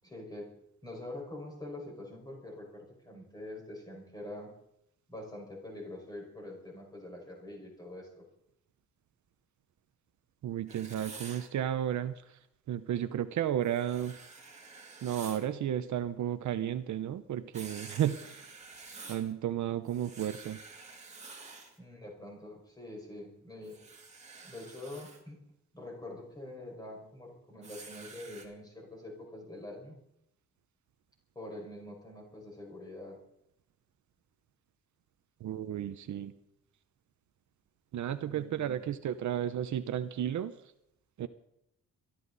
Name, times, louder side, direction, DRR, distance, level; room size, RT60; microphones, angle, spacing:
voice 1, 0.0-0.5 0.8-4.5 5.1-8.3 21.8-23.8 24.4-25.4 25.7-30.0 31.4-33.2 38.2-38.8, left 1 dB, 10° left, -2 dB, 5.4 m, -45 dB
voice 2, 10.4-12.4 12.7-14.2 15.0-18.5 19.1-20.6 35.4-36.3 37.9-40.5 41.2-41.3, right 10 dB, 65° right, 10 dB, 0.9 m, -33 dB
Writing, 10.7-11.5 13.6-15.5 17.5-19.3 19.9-21.8 23.6-25.2 27.6-28.5, right 4 dB, 20° right, 2.6 m, -49 dB
22.5 x 13.0 x 4.1 m, 0.79 s
wide cardioid pair, 175°, 32 cm